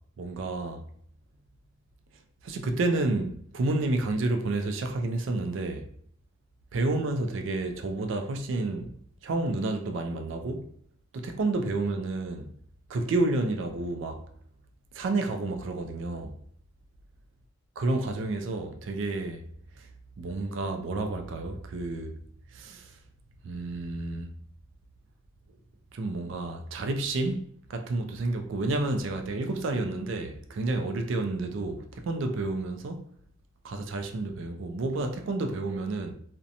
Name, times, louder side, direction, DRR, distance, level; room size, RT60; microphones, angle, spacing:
voice 1, 0.2-0.8 2.4-5.9 6.7-9.0 9.2-10.7 11.1-12.5 12.9-14.2 14.9-16.4 17.8-19.5 19.8-19.9 20.2-22.2 22.5-23.0 23.4-24.3 25.9-33.1 33.6-36.1, right 2 dB, 65° right, 0.3 m, -30 dB
2.7 x 2.1 x 2.5 m
head